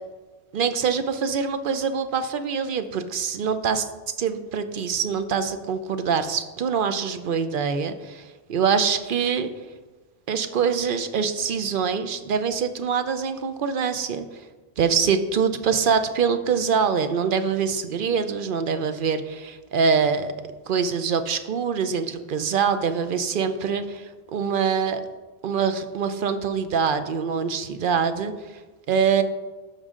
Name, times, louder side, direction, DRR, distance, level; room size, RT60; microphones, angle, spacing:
voice 1, 0.5-3.8 4.2-9.5 10.3-14.3 14.8-20.3 20.7-25.0 25.4-28.6 28.9-29.2, right 6 dB, 55° right, 10 dB, 0.7 m, -24 dB
11.5 x 6.6 x 3.7 m, 1.3 s
omnidirectional pair, 1.2 m